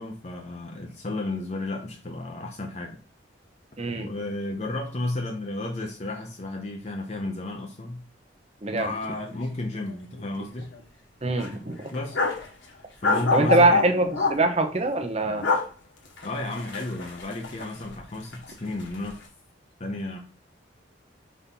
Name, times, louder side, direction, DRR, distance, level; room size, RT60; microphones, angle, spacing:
voice 1, 0.0-3.0 3.9-8.0 8.7-10.7 11.9-12.2 13.0-13.9 16.2-19.2 19.8-20.2, left 2 dB, 35° left, 2 dB, 0.6 m, -33 dB
voice 2, 3.8-4.1 8.6-8.9 11.2-11.9 13.3-15.5, right 2 dB, 30° right, 5 dB, 0.8 m, -23 dB
sound 1, 8.7-8.9 9.1-9.3 9.7-10.4 10.7-10.8 11.4-12.5 13.0-14.4 15.2-15.6 16.1-18.0 18.3-19.1, left 4 dB, 70° left, 1.6 m, -27 dB
4.2 x 4.2 x 5.4 m, 0.38 s
head